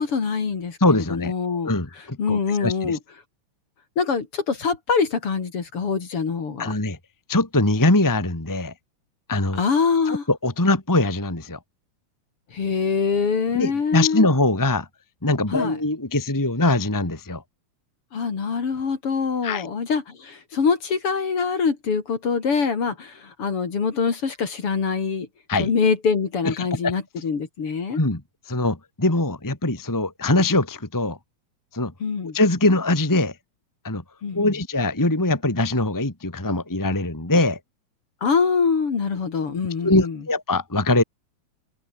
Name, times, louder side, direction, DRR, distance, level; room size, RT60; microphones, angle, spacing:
voice 1, 0.0-1.7 2.2-3.0 4.0-6.7 9.6-10.2 12.5-14.3 15.5-15.8 18.1-25.3 25.6-28.0 32.0-32.4 34.2-34.5 38.2-40.2, left 5 dB, 45° left, 3.5 m, -24 dB
voice 2, 0.8-1.3 1.6-3.0 6.6-7.0 7.3-8.7 9.3-9.6 10.1-11.6 13.5-14.9 15.2-17.4 19.4-19.7 25.5-25.7 26.4-26.9 27.9-28.2 28.5-31.2 31.7-31.9 32.3-33.3 33.8-34.0 34.3-37.6 39.8-41.0, left 2 dB, 5° left, 1.9 m, -22 dB
omnidirectional pair, 3.5 m